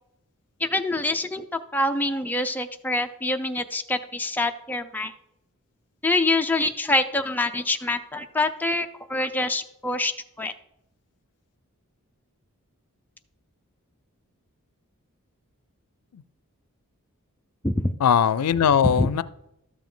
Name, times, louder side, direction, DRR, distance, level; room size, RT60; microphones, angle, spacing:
voice 1, 0.6-5.1 6.0-10.1 10.4-10.5 17.6-17.9 18.8-19.1, left 2 dB, 10° left, 6 dB, 0.5 m, -25 dB
voice 2, 18.0-19.2, left 7 dB, 90° left, 17 dB, 0.4 m, -20 dB
12.5 x 7.2 x 3.9 m, 0.82 s
head